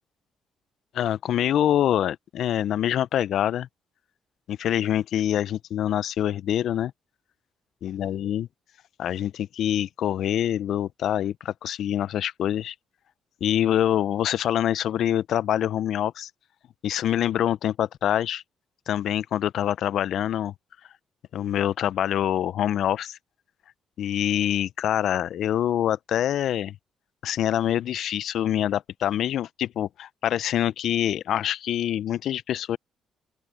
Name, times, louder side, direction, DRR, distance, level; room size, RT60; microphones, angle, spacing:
voice 1, 0.9-3.7 4.5-6.9 7.8-8.5 9.0-12.7 13.4-16.3 16.8-18.4 18.9-20.5 21.3-23.2 24.0-26.8 27.2-32.8, left 11 dB, 70° left, 0.6 m, -25 dB
open air
supercardioid pair, 60°, 0 cm